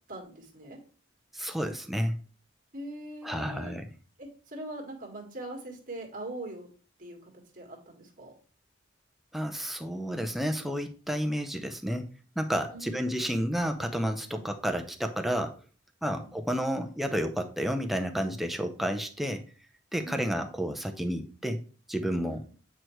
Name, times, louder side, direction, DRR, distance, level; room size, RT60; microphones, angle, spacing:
voice 1, 0.1-0.8 2.7-3.8 4.2-6.7 7.0-8.3 12.7-13.5 14.3-14.5 16.1-16.3 20.0-20.4 22.3-22.5, right 1 dB, 45° right, 1 dB, 1.7 m, -42 dB
voice 2, 1.3-2.2 3.2-3.9 9.3-12.1 12.4-15.6 16.0-19.4 19.9-21.6 21.9-22.4, equal, ahead, 5 dB, 0.6 m, -31 dB
8.3 x 4.5 x 3.1 m, 0.38 s
head